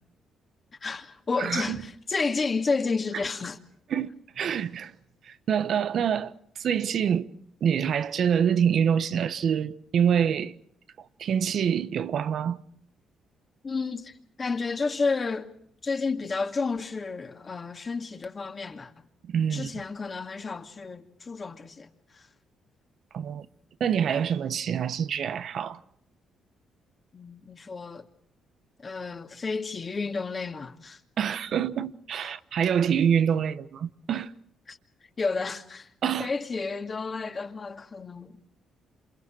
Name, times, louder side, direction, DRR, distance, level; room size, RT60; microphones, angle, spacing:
voice 1, 0.8-3.6 13.6-15.5 15.8-19.0 19.5-22.3 27.1-28.0 28.8-31.0 34.7-34.8 35.2-35.9 36.2-38.4, left 4 dB, 35° left, 2.4 m, -31 dB
voice 2, 1.4-1.8 3.9-4.1 4.4-4.9 5.2-7.3 7.6-10.5 11.0-12.6 19.2-19.7 23.1-23.5 23.8-25.8 31.2-34.3 36.0-36.3, right 8 dB, 65° right, 1.0 m, -26 dB
28.0 x 27.5 x 4.7 m
cardioid pair, 90°, 0 cm